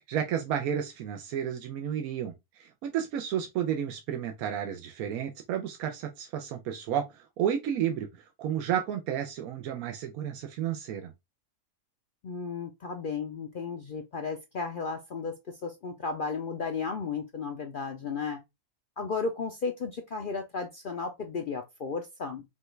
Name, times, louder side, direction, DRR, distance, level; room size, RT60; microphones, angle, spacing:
voice 1, 0.0-11.1, right 9 dB, 85° right, 1.1 m, -32 dB
voice 2, 12.2-18.4 19.0-22.4, left 4 dB, 60° left, 0.5 m, -34 dB
5.4 x 2.3 x 3.1 m
omnidirectional pair, 1.5 m